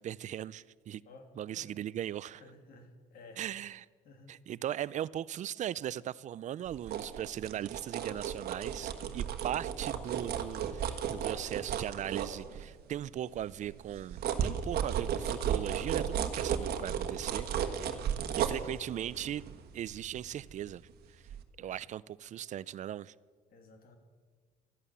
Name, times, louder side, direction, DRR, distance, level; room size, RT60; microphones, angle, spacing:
voice 1, 0.0-1.0 1.4-2.4 3.4-3.9 4.3-19.5 19.7-20.8 21.1-21.2 21.6-23.1, right 11 dB, 45° right, 0.4 m, -39 dB
voice 2, 2.4-3.4 4.0-4.3 17.8-18.2 21.6-21.8 23.5-24.0, left 2 dB, 60° left, 2.7 m, -54 dB
sound 1, 6.7-12.9 13.4-20.9 21.3-21.4, right 8 dB, 70° right, 1.4 m, -35 dB
13.0 x 11.5 x 8.3 m
cardioid pair, 110°, 17 cm